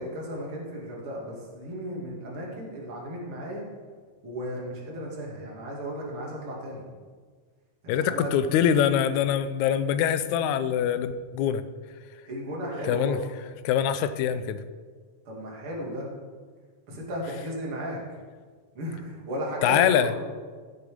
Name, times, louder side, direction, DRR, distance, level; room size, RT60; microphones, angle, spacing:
voice 1, 0.0-3.6 4.2-6.8 7.8-8.3 12.3-13.2 15.2-16.1 16.9-18.0 18.7-20.2, equal, 45° right, -3 dB, 3.2 m, -35 dB
voice 2, 7.9-11.6 12.8-13.2 13.6-14.6 19.6-20.1, left 9 dB, 85° left, 12 dB, 2.0 m, -24 dB
14.5 x 6.9 x 5.2 m, 1.6 s
omnidirectional pair, 3.4 m